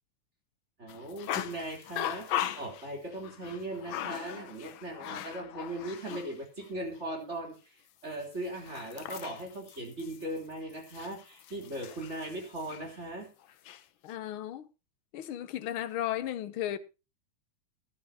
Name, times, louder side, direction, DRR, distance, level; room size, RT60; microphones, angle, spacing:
voice 1, 0.8-7.8 8.0-13.3, right 1 dB, 25° right, 3.6 m, -39 dB
sound 1, 0.9-6.3 6.6-6.7 8.2-12.9 13.4-13.8, left 11 dB, 85° left, 1.1 m, -39 dB
voice 2, 14.0-14.7 15.1-16.8, left 12 dB, 70° left, 1.3 m, -34 dB
18.0 x 11.5 x 2.9 m
omnidirectional pair, 3.3 m